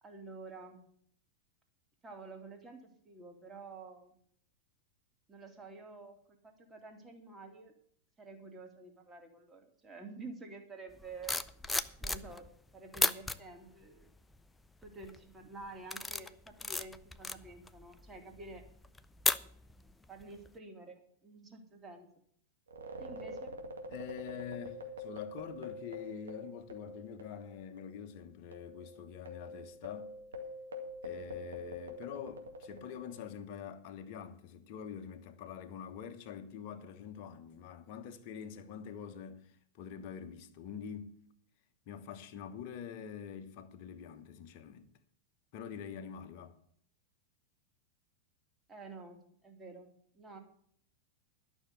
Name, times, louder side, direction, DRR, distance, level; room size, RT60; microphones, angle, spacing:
voice 1, 0.0-0.8 2.0-4.2 5.3-7.7 8.2-11.4 12.0-12.5 12.7-14.1 14.8-18.6 20.1-22.1 23.0-23.5 31.1-31.4 48.7-49.9 50.1-50.4, right 3 dB, 15° right, 2.5 m, -50 dB
sound 1, 11.0-12.6 12.9-13.4 14.0-14.4 14.8-15.2 15.6-19.9 20.2-20.5, left 3 dB, 10° left, 0.5 m, -35 dB
sound 2, 22.7-27.5 27.8-27.9 28.5-33.3, left 2 dB, 70° right, 1.9 m, -45 dB
voice 2, 23.9-30.1 31.0-41.1 41.9-44.9 45.5-46.6, left 8 dB, 45° left, 1.2 m, -45 dB
12.0 x 6.3 x 8.0 m
figure-of-eight pair, 90°, 0 cm